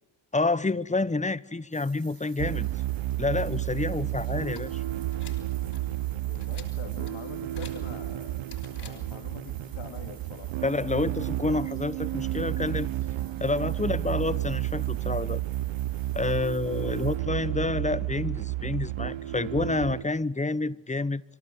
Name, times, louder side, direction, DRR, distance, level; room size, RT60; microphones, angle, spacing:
voice 1, 0.3-2.7 3.2-4.8 10.6-12.9 13.4-15.4 16.1-21.2, left 3 dB, 15° left, 1.0 m, -28 dB
sound 1, 1.7-17.2, right 5 dB, 45° right, 5.4 m, -54 dB
sound 2, 2.4-20.0, right 15 dB, 90° right, 0.9 m, -31 dB
sound 3, 4.4-9.4, left 6 dB, 60° left, 5.8 m, -51 dB
voice 2, 6.3-8.4 8.7-10.6 16.8-17.0 17.3-17.5, left 8 dB, 75° left, 3.4 m, -45 dB
25.5 x 17.5 x 8.0 m
cardioid pair, 60°, 46 cm